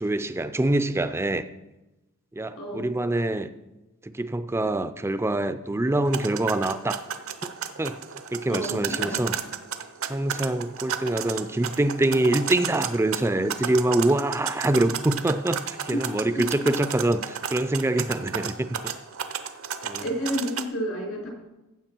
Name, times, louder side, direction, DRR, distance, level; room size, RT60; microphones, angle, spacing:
voice 1, 0.0-1.5 2.3-3.5 4.0-7.0 7.4-8.0 8.3-9.4 10.1-18.8 19.8-20.1, right 1 dB, 10° right, 12 dB, 0.4 m, -25 dB
voice 2, 2.6-2.9 8.5-9.2 15.9-16.1 16.3-16.4 20.0-21.3, equal, 80° left, -3 dB, 4.3 m, -30 dB
sound 1, 6.1-20.6, right 7 dB, 70° right, 0.7 m, -33 dB
15.0 x 7.1 x 4.5 m, 1.0 s
head